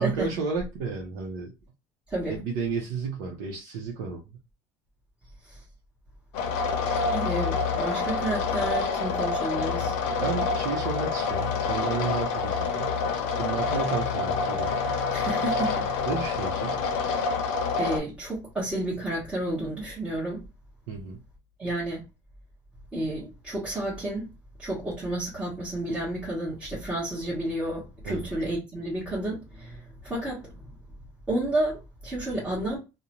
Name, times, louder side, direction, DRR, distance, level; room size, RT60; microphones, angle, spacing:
voice 1, 0.0-1.5 2.3-4.2 10.2-13.0 13.4-14.7 16.1-16.8 20.9-21.2 28.0-28.3, right 5 dB, 85° right, 0.6 m, -32 dB
sound 1, 6.3-18.0, left 4 dB, 70° left, 0.6 m, -27 dB
voice 2, 7.1-10.0 15.1-15.9 17.8-20.4 21.6-22.0 22.9-24.3 24.6-30.7 31.3-32.8, right 1 dB, 10° right, 1.0 m, -31 dB
2.5 x 2.1 x 2.9 m
cardioid pair, 150°, 10 cm